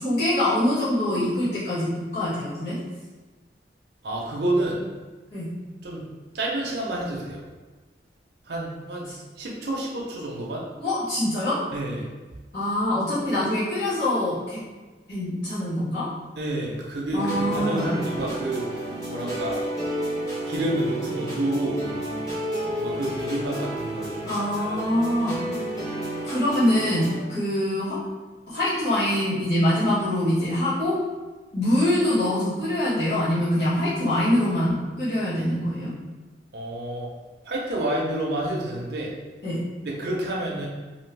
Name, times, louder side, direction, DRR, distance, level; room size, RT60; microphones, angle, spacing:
voice 1, 0.0-2.8 5.3-5.5 9.1-9.2 10.8-11.6 12.5-14.6 15.1-16.0 17.1-17.9 24.3-25.4 26.2-27.9 28.5-31.0 31.5-36.0 39.4-39.6, left 1 dB, 70° left, -13 dB, 1.4 m, -24 dB
voice 2, 4.0-4.8 5.8-6.1 6.3-7.4 8.5-9.1 9.4-10.6 11.7-12.1 16.4-18.7 19.1-19.6 20.5-21.8 22.8-24.3 24.6-24.8 36.5-37.1 37.5-39.1 39.8-40.7, right 1 dB, 70° right, -3 dB, 0.6 m, -29 dB
sound 1, 17.1-27.2, right 1 dB, 20° left, 0.9 m, -31 dB
2.6 x 2.5 x 3.2 m, 1.3 s
head